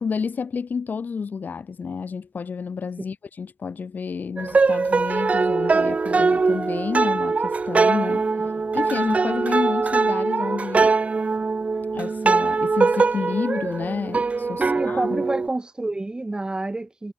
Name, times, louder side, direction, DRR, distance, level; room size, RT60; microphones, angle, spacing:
voice 1, 0.0-8.3 8.7-11.0 11.9-15.2, left 5 dB, 55° left, 0.5 m, -29 dB
sound 1, 4.4-15.5, right 4 dB, 40° right, 0.4 m, -22 dB
voice 2, 14.6-17.1, right 2 dB, 25° right, 3.3 m, -28 dB
wide cardioid pair, 85°, 3 cm